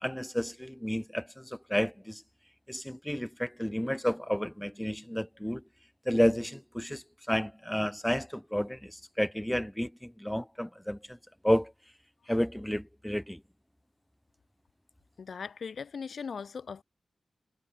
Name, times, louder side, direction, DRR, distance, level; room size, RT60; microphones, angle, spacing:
voice 1, 0.0-2.2 2.7-5.6 6.1-11.2 11.4-11.7 12.3-13.4, equal, 5° left, 0.5 m, -31 dB
voice 2, 15.2-16.8, left 6 dB, 85° left, 3.2 m, -39 dB
wide cardioid pair, 120°, 0 cm